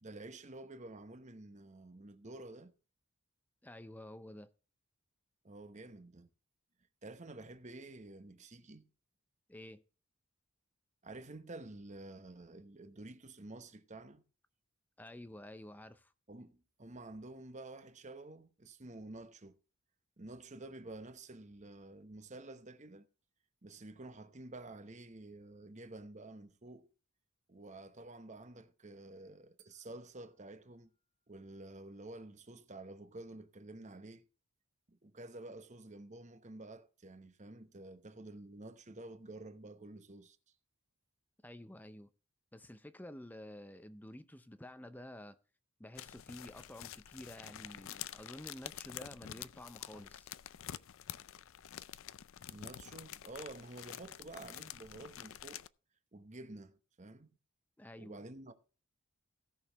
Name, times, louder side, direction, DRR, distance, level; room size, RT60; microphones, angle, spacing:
voice 1, 0.0-2.7 5.4-6.3 7.0-8.9 11.0-14.2 16.3-19.6 20.2-23.1 23.6-26.9 27.5-30.9 31.3-34.3 34.9-40.4 52.5-55.6 56.1-57.3 58.0-58.5, right 2 dB, 30° right, 0.9 m, -50 dB
voice 2, 3.6-4.5 9.5-9.8 15.0-16.1 41.4-42.1 42.5-45.4 45.8-50.3 57.8-58.2, left 1 dB, 10° left, 0.6 m, -50 dB
sound 1, 29.6-31.8, right 10 dB, 75° right, 2.3 m, -72 dB
sound 2, 45.9-55.7, left 11 dB, 60° left, 0.4 m, -48 dB
17.0 x 6.3 x 3.5 m
head